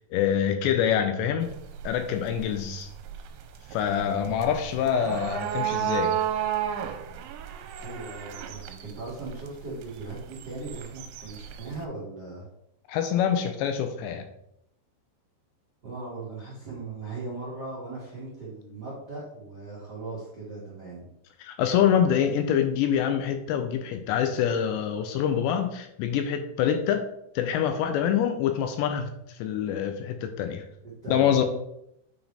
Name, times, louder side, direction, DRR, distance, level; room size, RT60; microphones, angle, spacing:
voice 1, 0.0-1.5 1.8-2.9 3.7-6.2 12.9-14.3 21.4-27.1 27.4-30.6 31.1-31.4, left 9 dB, 80° left, 7 dB, 2.7 m, -25 dB
sound 1, 1.4-11.8, right 10 dB, 85° right, 2.9 m, -34 dB
voice 2, 7.8-12.4 15.8-21.1 31.0-31.4, right 3 dB, 70° right, -8 dB, 0.9 m, -38 dB
9.1 x 4.9 x 3.3 m, 0.77 s
omnidirectional pair, 5.4 m